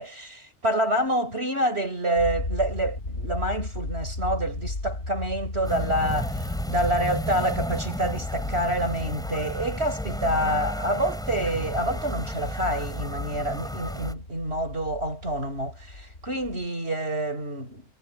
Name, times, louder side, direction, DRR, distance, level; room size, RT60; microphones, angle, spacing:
voice 1, 0.0-17.8, right 1 dB, 50° right, 6.4 m, -27 dB
sound 1, 2.2-16.7, left 2 dB, 60° left, 3.1 m, -36 dB
sound 2, 5.6-14.1, equal, 5° left, 3.9 m, -33 dB
omnidirectional pair, 1.4 m